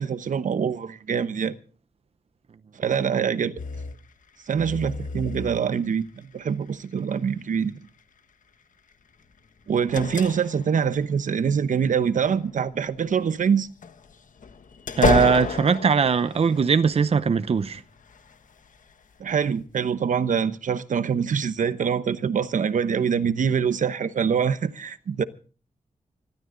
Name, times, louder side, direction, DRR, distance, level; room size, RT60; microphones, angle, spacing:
voice 1, 0.0-1.6 2.8-3.6 4.5-7.8 9.7-13.7 19.2-25.2, right 7 dB, 75° right, 1.0 m, -24 dB
sound 1, 3.6-4.0 4.5-5.9 6.8-7.0 9.4-11.2 11.9-12.9 13.6-17.2 17.6-18.9 19.4-19.5, left 5 dB, 75° left, 1.3 m, -30 dB
voice 2, 15.0-17.8, right 6 dB, 50° right, 0.7 m, -20 dB
25.5 x 13.0 x 3.9 m
wide cardioid pair, 165°, 14 cm